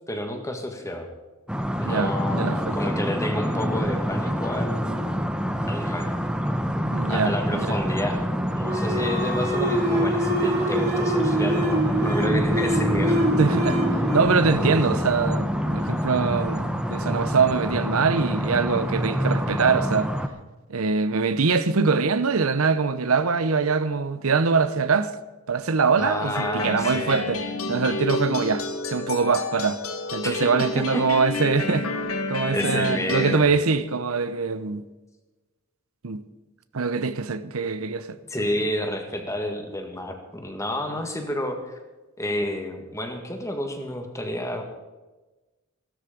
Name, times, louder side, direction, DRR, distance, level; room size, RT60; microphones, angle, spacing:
voice 1, 0.1-1.1 1.8-5.2 5.7-6.1 7.1-8.2 8.5-13.3 26.0-27.2 30.2-30.4 30.8-31.0 32.5-33.4 38.3-41.8 42.2-44.6, left 1 dB, 15° left, 1.9 m, -30 dB
sound 1, 1.5-20.3, equal, 5° right, 0.8 m, -26 dB
voice 2, 1.8-2.9 6.8-7.7 13.4-13.8 14.1-20.1 20.7-25.2 25.5-27.4 27.7-29.8 30.1-31.9 32.3-34.8 36.0-36.2 36.7-38.2 40.9-41.0, right 4 dB, 85° right, 0.8 m, -23 dB
sound 2, 8.6-15.8, right 1 dB, 45° right, 3.4 m, -26 dB
sound 3, 26.3-33.3, left 3 dB, 85° left, 1.6 m, -30 dB
16.0 x 13.0 x 5.2 m
head